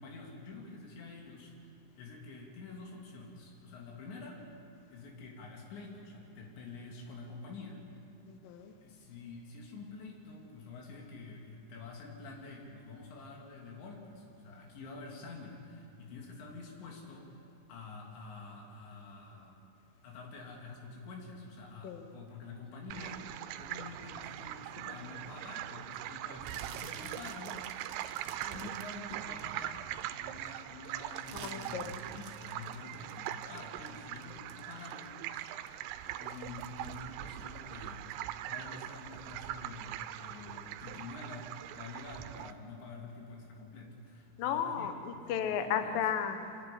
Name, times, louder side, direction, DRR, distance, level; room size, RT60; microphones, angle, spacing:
voice 1, 0.0-1.7 2.0-4.4 4.9-7.8 8.8-17.4 17.7-19.5 20.0-23.2 23.6-27.8 28.2-35.5 36.0-45.0 45.3-46.0, left 3 dB, 65° left, 0 dB, 4.8 m, -48 dB
voice 2, 8.3-8.7 21.8-22.1 31.3-32.0 44.4-46.4, left 8 dB, 85° left, 7 dB, 2.0 m, -34 dB
sound 1, 22.9-42.5, right 13 dB, 90° right, 3.3 m, -42 dB
sound 2, 26.4-30.0 30.4-35.2 35.5-38.2 38.5-38.9 39.3-39.4, right 8 dB, 70° right, 2.8 m, -49 dB
26.0 x 10.5 x 10.0 m, 2.5 s
omnidirectional pair, 5.7 m